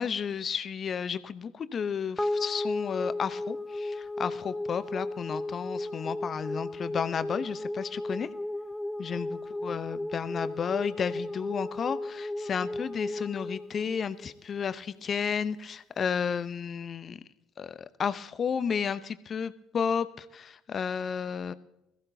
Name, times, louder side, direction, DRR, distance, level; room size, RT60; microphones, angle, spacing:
voice 1, 0.0-8.3 9.0-17.2 17.6-21.5, left 7 dB, 40° left, 14 dB, 0.7 m, -32 dB
sound 1, 2.2-14.7, left 2 dB, 10° left, 0.4 m, -35 dB
21.0 x 14.5 x 2.7 m, 0.87 s
figure-of-eight pair, 55°, 0 cm